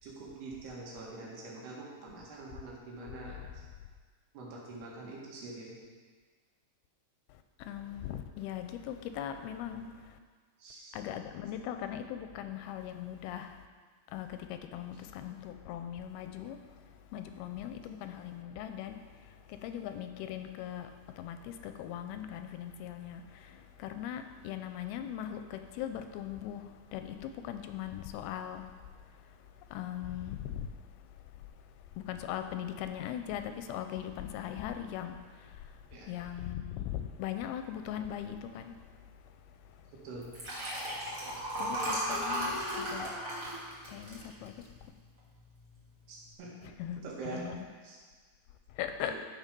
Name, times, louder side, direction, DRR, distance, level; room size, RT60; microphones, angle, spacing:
voice 1, 0.0-3.4 4.3-5.8 10.6-11.0 35.9-36.1 40.0-40.3 46.1-48.0 49.0-49.2, right 2 dB, 85° right, -4 dB, 4.0 m, -45 dB
voice 2, 7.3-10.2 10.9-13.7 14.1-30.7 32.0-39.2 39.5-39.9 41.6-43.1 43.9-44.7 46.8-47.0 47.3-47.6 48.7-49.2, left 10 dB, 85° left, 8 dB, 2.4 m, -40 dB
Liquid, 40.2-44.9 45.3-45.6 45.9-46.0, equal, 35° right, 2.1 m, -35 dB
14.0 x 5.4 x 5.3 m, 1.5 s
omnidirectional pair, 4.6 m